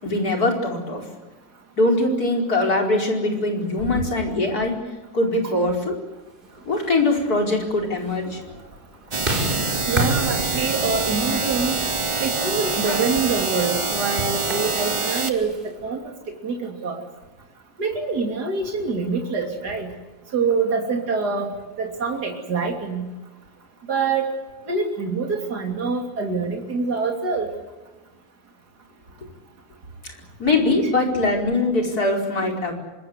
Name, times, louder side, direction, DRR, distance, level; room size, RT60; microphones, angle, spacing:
voice 1, 0.0-1.0 1.8-4.7 5.1-5.9 6.7-8.4 30.4-32.7, left 2 dB, 55° left, 1 dB, 5.4 m, -22 dB
sound 1, 6.6-15.7, right 1 dB, 25° right, 4.7 m, -32 dB
sound 2, 9.1-15.3, right 4 dB, 45° right, 0.4 m, -25 dB
voice 2, 9.9-11.8 12.2-15.6 15.8-16.0 16.4-17.0 17.8-19.9 20.3-21.5 21.8-23.1 23.9-24.2 24.7-27.5, right 4 dB, 60° right, 2 dB, 3.6 m, -25 dB
25.0 x 21.5 x 8.1 m, 1.1 s
omnidirectional pair, 2.0 m